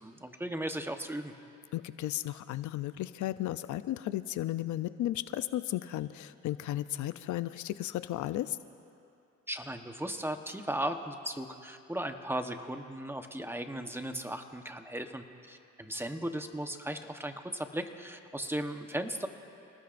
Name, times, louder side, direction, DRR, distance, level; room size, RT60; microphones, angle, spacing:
voice 1, 0.0-1.3 9.5-19.3, right 1 dB, 10° right, 6 dB, 1.0 m, -37 dB
voice 2, 1.7-8.6, left 14 dB, 75° left, 13 dB, 0.5 m, -34 dB
29.5 x 19.0 x 2.6 m, 2.6 s
cardioid pair, 90°, 30 cm